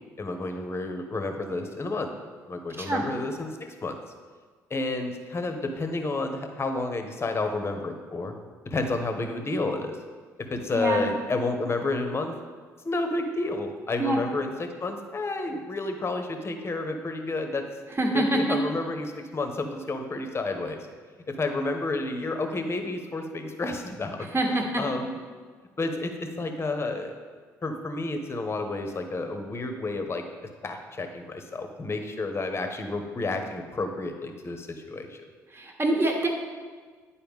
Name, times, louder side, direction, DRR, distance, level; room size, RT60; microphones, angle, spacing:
voice 1, 0.2-2.1 2.5-4.0 4.7-8.3 8.6-10.0 10.4-12.3 12.8-17.7 18.1-20.8 21.3-24.2 24.8-25.2 25.8-27.2 27.6-30.3 30.6-35.2, left 2 dB, 30° left, 6 dB, 0.9 m, -30 dB
voice 2, 10.7-11.0 14.0-14.2 18.0-18.6 24.3-24.8 35.5-36.3, right 1 dB, 30° right, 1 dB, 1.3 m, -25 dB
9.1 x 4.2 x 3.6 m, 1.5 s
hypercardioid pair, 50°, 8 cm